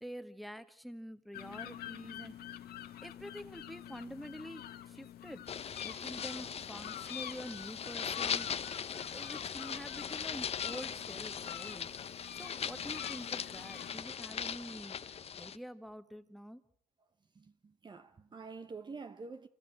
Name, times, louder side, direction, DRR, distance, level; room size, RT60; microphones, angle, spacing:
voice 1, 0.0-2.4 3.0-5.5 5.8-8.5 9.1-16.6, equal, ahead, 1.7 m, -47 dB
sound 1, 1.3-14.0, left 11 dB, 65° left, 1.7 m, -48 dB
sound 2, 5.5-15.6, left 7 dB, 35° left, 1.0 m, -40 dB
voice 2, 17.0-19.5, right 4 dB, 25° right, 1.2 m, -48 dB
26.0 x 21.5 x 8.8 m
cardioid pair, 110°, 17 cm